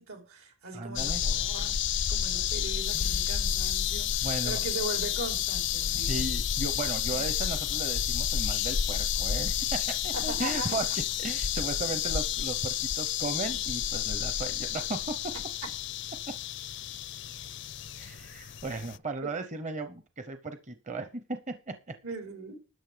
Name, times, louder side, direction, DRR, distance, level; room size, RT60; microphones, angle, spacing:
voice 1, 0.0-1.8 2.1-6.3 10.1-10.8 22.0-22.6, right 3 dB, 80° right, 4.4 m, -39 dB
voice 2, 0.7-1.2 2.9-3.2 4.2-4.6 5.9-10.9 11.2-15.1 17.9-21.9, right 3 dB, 35° right, 0.8 m, -36 dB
sound 1, 1.0-19.0, left 9 dB, 55° left, 0.5 m, -30 dB
13.0 x 8.2 x 5.1 m
head